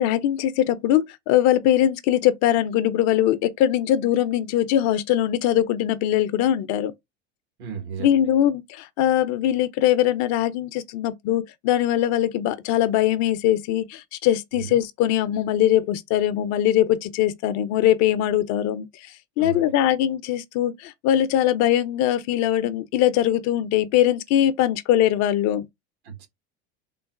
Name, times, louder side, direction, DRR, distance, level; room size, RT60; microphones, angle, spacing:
voice 1, 0.0-6.9 8.0-18.9 19.4-25.7, left 12 dB, 55° left, 0.5 m, -21 dB
voice 2, 7.6-8.3 14.5-14.8 19.4-19.7 26.0-26.3, right 7 dB, 85° right, 1.3 m, -35 dB
3.8 x 2.0 x 2.4 m
hypercardioid pair, 95°, 33 cm